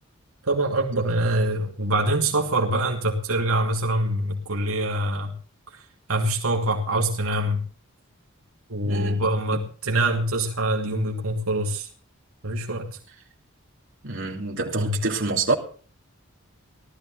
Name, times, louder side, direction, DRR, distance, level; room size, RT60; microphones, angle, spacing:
voice 1, 0.4-5.3 5.7-5.8 6.1-7.6 8.7-11.9 12.4-13.0 14.8-15.0, right 1 dB, 80° right, 2.7 m, -24 dB
voice 2, 8.8-9.6 14.0-15.5, right 3 dB, 60° right, 3.0 m, -27 dB
18.0 x 13.0 x 3.8 m
head